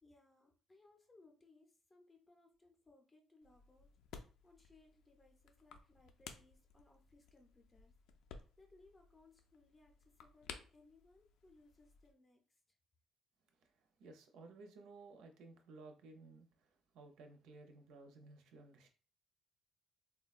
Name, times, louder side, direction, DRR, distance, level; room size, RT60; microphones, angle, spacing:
voice 1, 0.0-3.9 4.4-7.9 8.6-12.6, left 2 dB, 15° left, 0.5 m, -67 dB
sound 1, 3.4-12.1, left 6 dB, 75° left, 0.4 m, -57 dB
voice 2, 14.0-18.9, right 3 dB, 85° right, 0.6 m, -57 dB
3.8 x 2.2 x 2.4 m
cardioid pair, 175°, 0 cm